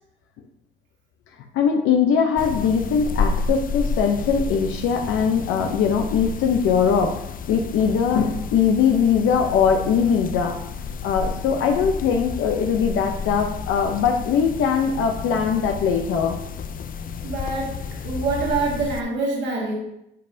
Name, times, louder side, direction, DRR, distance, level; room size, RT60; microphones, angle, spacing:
voice 1, 1.5-7.1 7.5-10.6 11.0-16.4, left 6 dB, 85° left, 3 dB, 0.7 m, -21 dB
sound 1, 2.4-19.0, left 5 dB, 45° left, 0.4 m, -31 dB
voice 2, 17.2-17.8 18.0-19.7, right 3 dB, 60° right, -4 dB, 1.7 m, -25 dB
9.5 x 5.4 x 2.7 m, 0.83 s
cardioid pair, 90°, 20 cm